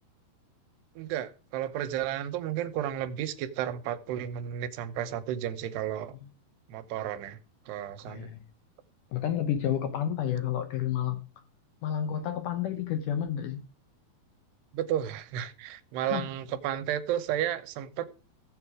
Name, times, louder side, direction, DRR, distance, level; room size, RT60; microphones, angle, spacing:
voice 1, 1.0-6.1 6.7-7.4 7.7-8.3 14.7-18.1, right 11 dB, 85° right, 3.0 m, -32 dB
voice 2, 8.1-8.4 9.1-11.3 11.8-13.6 16.0-16.3, left 10 dB, 75° left, 1.9 m, -30 dB
15.0 x 8.0 x 4.8 m
omnidirectional pair, 4.6 m